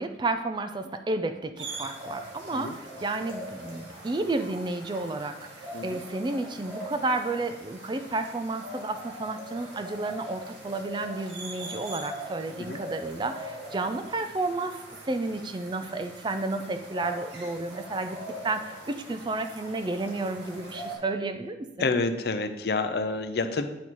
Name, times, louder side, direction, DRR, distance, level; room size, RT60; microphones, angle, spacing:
voice 1, 0.0-5.4 5.8-18.2 18.4-21.9, right 2 dB, 25° right, 8 dB, 0.4 m, -31 dB
sound 1, 1.6-20.9, right 1 dB, 90° right, 1.8 m, -42 dB
voice 2, 21.8-23.7, left 3 dB, 55° left, 9 dB, 0.5 m, -28 dB
8.5 x 4.0 x 4.6 m, 0.99 s
head